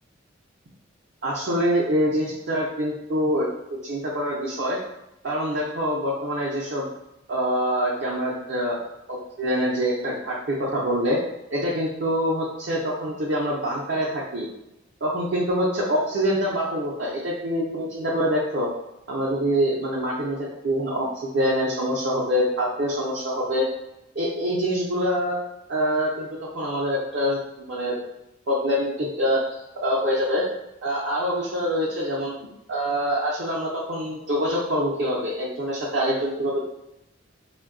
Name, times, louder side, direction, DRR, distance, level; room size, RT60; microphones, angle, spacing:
voice 1, 1.2-3.5 3.8-4.8 5.2-6.9 7.3-8.8 9.1-11.2 11.5-14.5 15.0-18.7 19.1-20.4 20.6-23.7 24.1-25.4 25.7-26.3 26.5-27.9 28.5-29.4 29.8-30.4 30.8-32.3 32.7-36.6, equal, 60° right, -5 dB, 0.5 m, -25 dB
2.5 x 2.2 x 3.6 m, 0.89 s
head